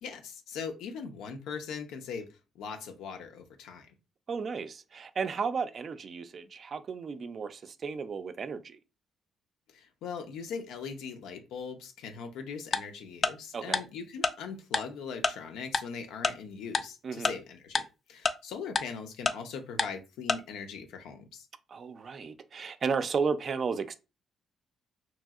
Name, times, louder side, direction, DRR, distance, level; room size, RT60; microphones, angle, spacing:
voice 1, 0.0-3.9 9.7-17.8 18.1-21.5, left 6 dB, 90° left, 0.5 m, -40 dB
voice 2, 4.3-8.8 13.5-13.8 17.0-17.3 21.7-23.9, right 5 dB, 50° right, 0.3 m, -33 dB
Tick-tock, 12.7-12.8 13.2-13.3 13.7-13.8 14.2-14.3 14.7-14.8 15.2-15.3 15.7-15.8 16.2-16.3 16.7-16.8 17.2-17.3 17.8-17.9 18.3-18.4 18.8-18.9 19.3-19.4 19.8-19.9 20.3-20.4, left 4 dB, 35° left, 0.3 m, -26 dB
3.0 x 2.7 x 2.3 m
cardioid pair, 90°, 0 cm